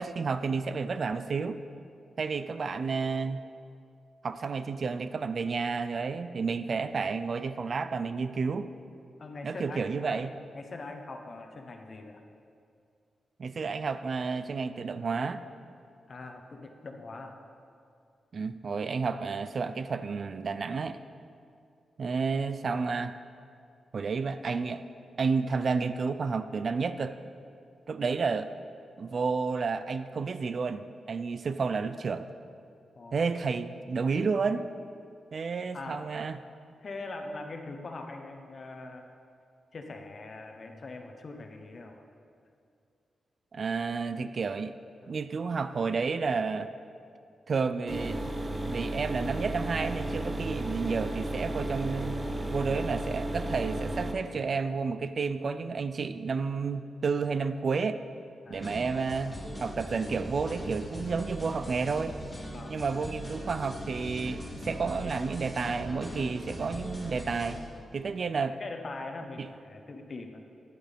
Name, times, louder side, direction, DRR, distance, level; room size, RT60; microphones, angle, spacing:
voice 1, 0.0-1.6 2.2-3.4 4.2-8.7 9.4-10.3 13.4-15.4 18.3-21.0 22.0-23.2 23.9-24.8 25.2-27.2 27.9-28.5 29.0-32.3 33.1-34.7 35.3-36.4 43.5-44.7 45.1-46.7 47.5-48.2 48.7-52.2 52.5-58.0 58.5-59.4 59.6-62.2 62.7-67.6 67.9-68.6 69.4-69.5, right 4 dB, 45° right, 11 dB, 0.4 m, -31 dB
voice 2, 9.2-10.2 10.5-12.2 16.1-17.4 32.9-33.2 35.7-36.0 36.8-39.1 39.7-42.0 45.0-45.2 58.4-58.7 62.5-62.8 68.6-70.4, left 3 dB, 40° left, 4 dB, 0.9 m, -42 dB
sound 1, 47.9-54.1, right 1 dB, 25° right, 0.9 m, -33 dB
sound 2, 58.5-67.6, equal, 10° left, 2.3 m, -40 dB
13.0 x 10.0 x 3.5 m, 2.4 s
wide cardioid pair, 145°, 0 cm